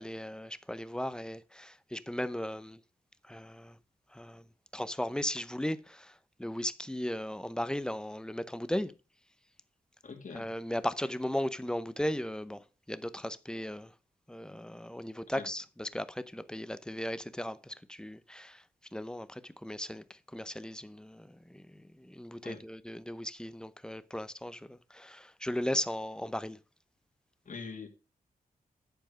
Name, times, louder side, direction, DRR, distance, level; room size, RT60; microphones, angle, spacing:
voice 1, 0.0-2.8 3.2-3.8 4.1-4.5 4.7-8.9 10.3-13.9 14.3-18.6 18.9-26.6, left 1 dB, 5° left, 0.7 m, -37 dB
voice 2, 10.0-10.5 15.3-15.5 22.4-22.6 27.5-27.9, left 5 dB, 55° left, 2.5 m, -43 dB
10.5 x 4.5 x 6.4 m
cardioid pair, 85°, 15 cm